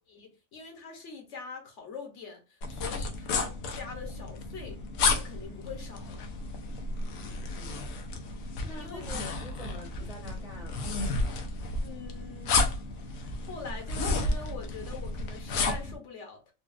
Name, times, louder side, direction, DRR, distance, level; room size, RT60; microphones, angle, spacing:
voice 1, 0.1-6.3 8.8-9.0 11.8-12.6 13.1-16.5, left 5 dB, 65° left, 1.1 m, -44 dB
sound 1, 2.6-15.9, left 3 dB, 90° left, 1.1 m, -32 dB
voice 2, 7.0-7.8 8.6-10.9, left 1 dB, 5° right, 0.7 m, -47 dB
4.0 x 2.3 x 2.4 m
omnidirectional pair, 1.4 m